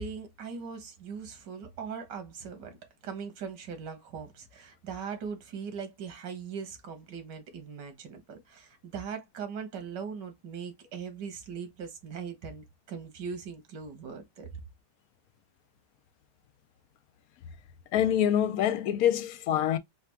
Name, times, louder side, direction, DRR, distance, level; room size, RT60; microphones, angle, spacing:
voice 1, 0.0-2.8 3.0-14.6, right 6 dB, 90° right, 1.8 m, -40 dB
voice 2, 17.9-19.8, left 10 dB, 70° left, 0.9 m, -25 dB
4.2 x 2.3 x 4.4 m
omnidirectional pair, 1.8 m